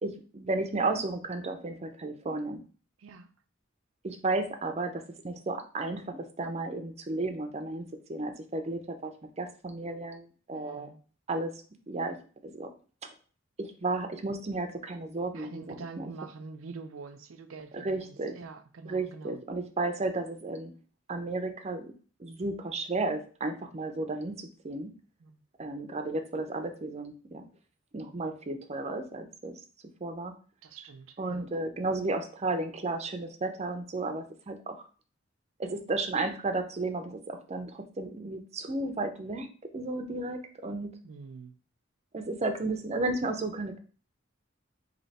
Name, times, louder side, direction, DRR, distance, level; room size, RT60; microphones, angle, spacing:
voice 1, 0.0-2.6 4.0-9.1 9.4-10.9 11.3-11.5 11.9-12.2 12.4-12.7 13.6-16.1 17.7-18.3 18.8-20.7 21.1-21.9 22.2-24.9 25.6-27.5 27.9-29.5 30.0-30.3 31.2-34.8 35.6-39.5 39.7-40.9 42.1-43.8, right 2 dB, 30° right, 0.5 m, -33 dB
voice 2, 10.5-11.0 15.3-19.4 25.2-25.4 30.6-31.4 41.0-41.5, right 4 dB, 85° right, 0.5 m, -45 dB
3.2 x 2.8 x 4.0 m
head